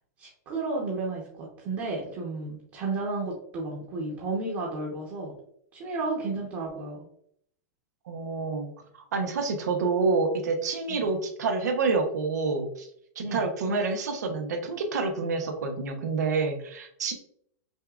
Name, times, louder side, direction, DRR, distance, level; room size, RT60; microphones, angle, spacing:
voice 1, 0.2-5.3 5.7-7.0 10.9-11.1 13.2-13.5, right 3 dB, 40° right, -3 dB, 1.1 m, -32 dB
voice 2, 8.1-12.9 13.2-17.1, right 4 dB, 85° right, 5 dB, 0.9 m, -28 dB
6.4 x 2.3 x 2.5 m, 0.68 s
supercardioid pair, 145°, 9 cm